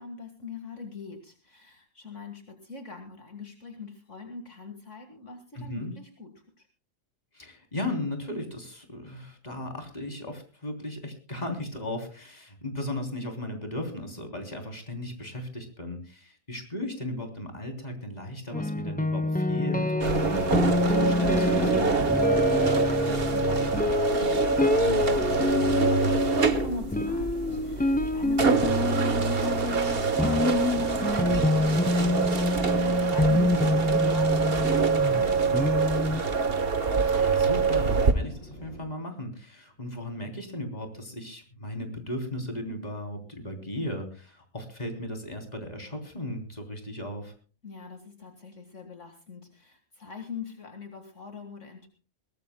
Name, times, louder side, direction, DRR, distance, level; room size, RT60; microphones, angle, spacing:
voice 1, 0.0-6.3 6.6-6.7 22.4-36.3 47.6-51.9, left 4 dB, 60° left, 5 dB, 2.1 m, -43 dB
voice 2, 5.5-5.9 7.3-21.9 28.4-28.7 37.2-47.3, left 1 dB, 30° left, 4 dB, 3.5 m, -36 dB
sound 1, 18.5-36.2, left 2 dB, 10° left, 0.4 m, -27 dB
sound 2, 20.0-38.1, right 4 dB, 45° right, 1.5 m, -25 dB
sound 3, 21.5-38.8, equal, 75° left, 7.2 m, -46 dB
22.0 x 19.0 x 2.2 m, 0.37 s
omnidirectional pair, 1.5 m